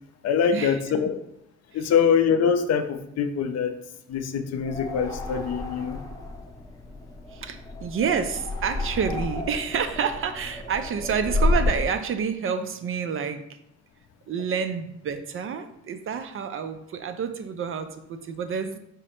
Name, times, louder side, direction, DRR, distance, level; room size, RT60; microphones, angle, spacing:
voice 1, 0.2-1.2 1.7-3.7 4.1-6.0, left 7 dB, 60° left, 8 dB, 0.5 m, -24 dB
sound 1, 4.6-11.9, left 2 dB, 10° left, 0.7 m, -30 dB
voice 2, 7.3-13.4 14.3-18.8, right 6 dB, 45° right, 9 dB, 0.4 m, -28 dB
4.9 x 2.1 x 4.2 m, 0.76 s
cardioid pair, 90°, 30 cm